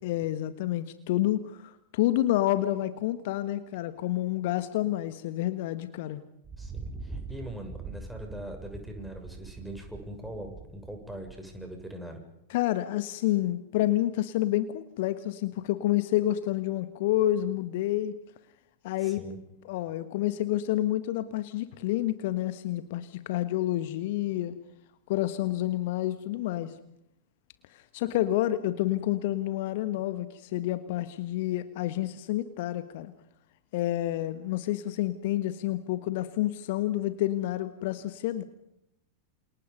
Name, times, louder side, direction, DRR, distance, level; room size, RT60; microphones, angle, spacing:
voice 1, 0.0-6.2 12.5-18.1 18.8-19.2 19.7-24.5 25.1-26.7 27.7-33.1 33.7-38.4, left 14 dB, 50° left, 12 dB, 1.4 m, -29 dB
Thunder, 6.4-11.9, right 4 dB, 20° right, 3.7 m, -43 dB
voice 2, 6.6-12.2 19.0-19.4, right 1 dB, ahead, 3 dB, 7.0 m, -41 dB
29.0 x 28.5 x 5.5 m, 0.81 s
figure-of-eight pair, 90°, 0 cm